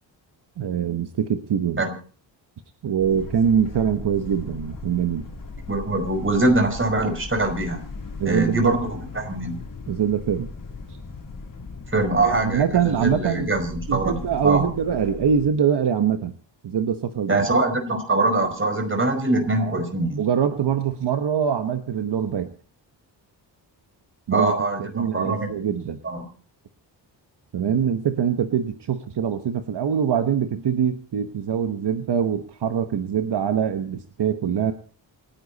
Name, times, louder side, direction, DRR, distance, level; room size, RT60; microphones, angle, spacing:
voice 1, 0.6-1.8 2.8-5.3 8.2-8.8 9.9-10.5 10.9-11.0 12.2-13.5 13.9-16.3 16.6-17.5 19.6-19.8 20.2-22.5 24.3-24.5 24.8-26.0 27.5-34.7, right 8 dB, 65° right, 8 dB, 1.3 m, -23 dB
sound 1, 3.0-15.5, left 4 dB, 45° left, 3.7 m, -38 dB
voice 2, 5.7-7.8 8.3-9.6 11.9-14.7 17.3-20.2 24.3-26.2, right 2 dB, 25° right, 6 dB, 5.1 m, -23 dB
28.0 x 10.5 x 4.2 m, 0.41 s
wide cardioid pair, 115°, 44 cm